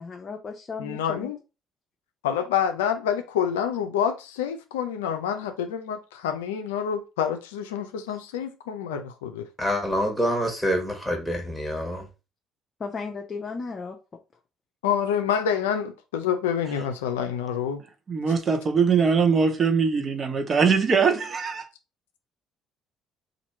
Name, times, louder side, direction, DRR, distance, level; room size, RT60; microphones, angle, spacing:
voice 1, 0.0-1.3 8.1-8.2 12.8-14.0, left 4 dB, 40° left, 0.6 m, -35 dB
voice 2, 0.8-1.4 2.2-9.5 14.8-17.8, left 8 dB, 90° left, 0.4 m, -27 dB
voice 3, 9.6-12.0, equal, 5° left, 1.5 m, -26 dB
voice 4, 18.1-21.7, right 5 dB, 40° right, 0.8 m, -22 dB
2.9 x 2.6 x 4.2 m
hypercardioid pair, 60°, 0 cm